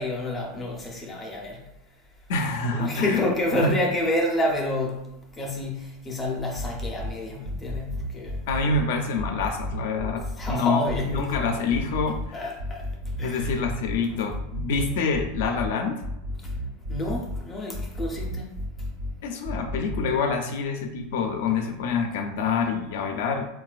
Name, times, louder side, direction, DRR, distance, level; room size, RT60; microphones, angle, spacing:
voice 1, 0.0-1.6 2.7-8.5 10.4-11.4 12.3-13.6 14.0-14.3 16.4-16.5 16.9-18.6, left 1 dB, 15° left, 0.5 m, -29 dB
voice 2, 2.3-3.2 3.5-3.7 8.5-12.4 13.2-16.0 19.2-23.5, left 4 dB, 70° left, 0.4 m, -27 dB
sound 1, 6.6-7.1 7.4-8.8 9.2-10.6 10.9-12.3 12.6-14.0 14.3-15.7 16.0-17.4 17.7-19.1 19.4-20.1, equal, 60° right, 1.0 m, -32 dB
3.8 x 2.2 x 2.4 m
supercardioid pair, 160°, 0 cm